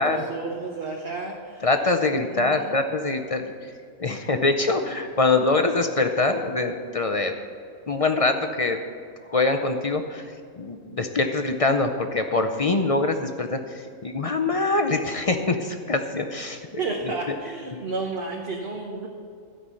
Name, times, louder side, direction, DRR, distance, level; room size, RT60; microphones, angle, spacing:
voice 1, 0.0-1.7 2.2-2.7 16.8-19.1, right 3 dB, 50° right, 0 dB, 1.2 m, -32 dB
voice 2, 1.6-3.7 4.0-7.3 7.9-8.8 9.3-17.0 17.3-17.4, left 3 dB, 45° left, 6 dB, 0.5 m, -24 dB
13.0 x 5.5 x 8.3 m, 2.3 s
omnidirectional pair, 1.4 m